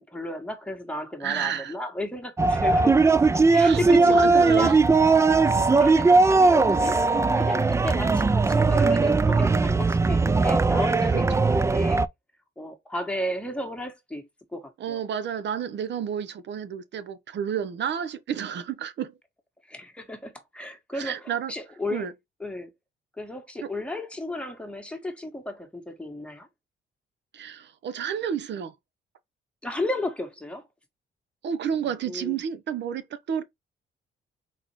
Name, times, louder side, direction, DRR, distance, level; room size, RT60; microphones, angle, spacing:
voice 1, 0.0-3.0 3.5-4.8 5.7-7.0 7.3-12.0 12.6-14.2 14.5-15.0 19.7-22.1 22.4-22.7 23.2-26.5 29.6-30.6 32.1-32.4, left 1 dB, 5° left, 1.6 m, -33 dB
voice 2, 1.2-1.7 3.6-4.8 11.1-11.5 14.8-19.1 20.9-21.5 21.9-22.1 23.6-23.7 27.3-28.7 31.4-33.4, right 8 dB, 60° right, 0.8 m, -30 dB
sound 1, 2.4-12.1, right 3 dB, 15° right, 0.3 m, -19 dB
4.3 x 4.0 x 3.0 m
cardioid pair, 90°, 20 cm